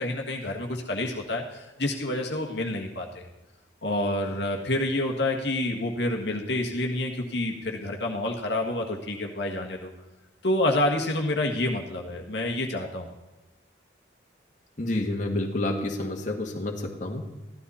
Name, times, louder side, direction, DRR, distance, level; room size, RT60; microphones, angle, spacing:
voice 1, 0.0-3.3 3.8-9.9 10.4-13.1, left 1 dB, 60° left, 1 dB, 1.5 m, -28 dB
voice 2, 14.8-17.2, left 1 dB, 40° left, 1 dB, 1.6 m, -29 dB
15.0 x 12.5 x 4.2 m, 1.1 s
head